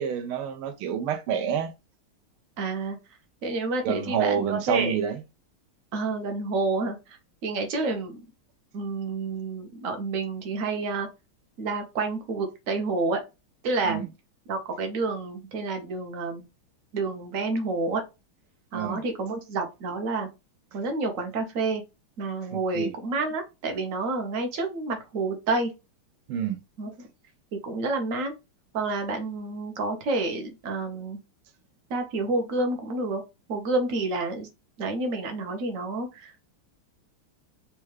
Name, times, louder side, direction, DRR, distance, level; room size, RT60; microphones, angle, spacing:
voice 1, 0.0-1.7 3.8-5.2 13.8-14.1 18.7-19.0 22.7-22.9 26.3-26.6, right 8 dB, 85° right, 1.5 m, -28 dB
voice 2, 2.6-3.0 3.4-5.0 5.9-8.2 8.7-11.1 11.6-13.2 13.6-14.0 14.5-16.4 16.9-18.0 18.7-20.3 20.7-21.8 22.2-25.7 26.8-27.1 27.5-28.3 28.7-31.2 31.9-33.2 33.5-34.5 34.8-36.3, right 3 dB, 60° right, 0.8 m, -29 dB
4.3 x 2.4 x 3.1 m
omnidirectional pair, 2.3 m